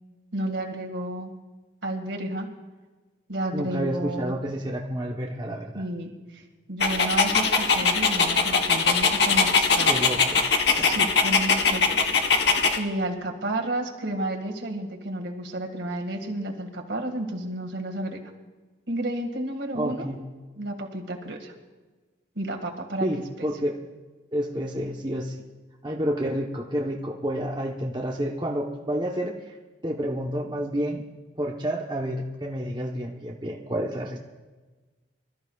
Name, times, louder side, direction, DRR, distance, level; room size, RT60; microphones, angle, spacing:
voice 1, 0.3-1.3 1.8-2.5 3.3-4.4 5.7-6.4 6.7-9.9 10.9-12.0 12.8-18.2 18.9-20.1 20.6-21.5 22.4-23.1 23.4-23.5, right 1 dB, 75° right, 2 dB, 2.0 m, -31 dB
voice 2, 3.5-5.8 9.9-10.4 10.8-10.9 19.7-20.2 23.0-23.8 24.3-25.3 25.8-29.5 29.8-31.0 31.4-34.2, equal, 25° right, -1 dB, 1.0 m, -29 dB
Dog, 6.8-12.8, left 4 dB, 65° left, 1.1 m, -21 dB
25.5 x 13.5 x 2.4 m, 1.3 s
head